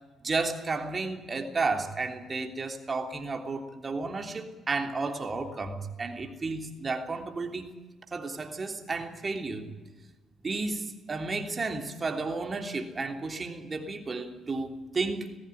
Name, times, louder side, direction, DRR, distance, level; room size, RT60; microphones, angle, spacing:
voice 1, 0.2-7.7 8.1-9.7 10.4-15.3, right 3 dB, 35° right, 4 dB, 3.2 m, -32 dB
20.0 x 15.5 x 10.0 m, 1.3 s
cardioid pair, 90°, 0 cm